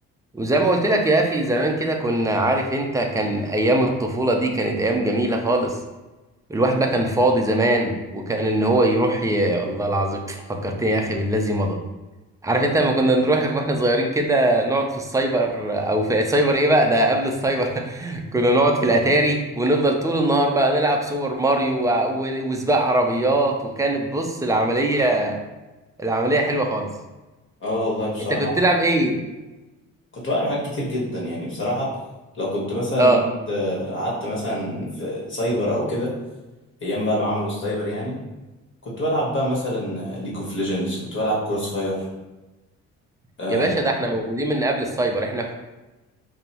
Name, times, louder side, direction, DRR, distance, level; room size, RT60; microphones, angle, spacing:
voice 1, 0.3-5.8 6.5-11.8 12.4-25.4 26.0-26.9 28.3-29.2 33.0-33.2 43.5-45.5, right 1 dB, 10° right, 2 dB, 0.5 m, -21 dB
voice 2, 27.6-28.6 30.2-31.9 32.3-33.2 33.5-36.1 36.8-38.2 38.8-42.0 43.4-43.9, equal, 40° left, -6 dB, 1.3 m, -26 dB
5.1 x 2.0 x 2.9 m, 1.1 s
cardioid pair, 90°, 30 cm